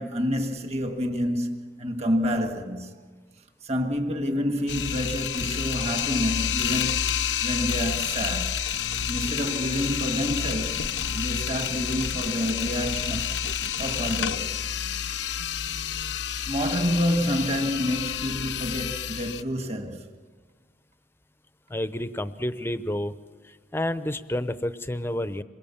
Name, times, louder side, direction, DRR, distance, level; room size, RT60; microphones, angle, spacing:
voice 1, 0.0-2.9 3.6-8.6 9.1-10.9 11.1-13.4 13.8-14.6 16.5-20.1, equal, 35° right, 1.8 m, -28 dB
sound 1, 4.7-19.4, left 9 dB, 75° left, 0.6 m, -29 dB
sound 2, 8.7-14.2, right 2 dB, 85° right, 1.4 m, -43 dB
voice 2, 21.7-23.1 23.7-25.4, left 1 dB, 15° left, 0.7 m, -29 dB
27.0 x 22.5 x 7.2 m
head